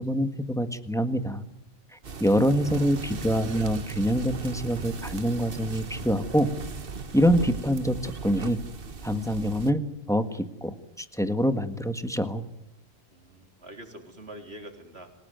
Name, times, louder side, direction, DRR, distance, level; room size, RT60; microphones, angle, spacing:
voice 1, 0.0-1.4 1.9-6.5 7.1-8.6 9.0-9.8 10.1-12.4, equal, 5° left, 8 dB, 1.6 m, -25 dB
sound 1, 2.0-9.7, right 4 dB, 65° right, 1.4 m, -38 dB
voice 2, 2.0-2.3 2.7-2.9 13.1-15.1, right 1 dB, 90° right, 4 dB, 4.1 m, -45 dB
27.0 x 18.0 x 9.3 m, 0.86 s
omnidirectional pair, 1.0 m